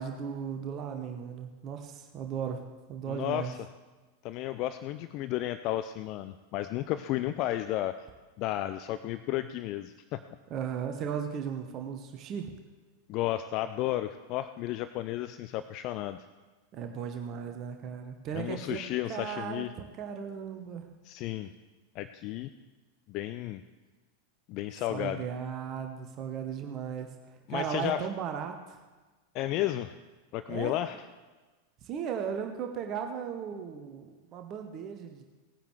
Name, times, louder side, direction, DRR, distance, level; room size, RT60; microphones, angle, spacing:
voice 1, 0.0-3.5 10.5-12.5 16.7-20.9 24.9-28.8 30.5-30.8 31.8-35.2, right 7 dB, 35° right, 5 dB, 1.0 m, -36 dB
voice 2, 3.1-3.6 4.2-8.1 8.4-10.2 13.1-16.2 18.3-19.7 21.0-21.5 22.0-22.5 23.1-23.6 24.5-25.2 27.5-28.1 29.3-30.0 30.3-30.9, left 14 dB, 40° left, 11 dB, 0.4 m, -33 dB
19.0 x 10.0 x 3.2 m, 1.3 s
figure-of-eight pair, 90°, 0 cm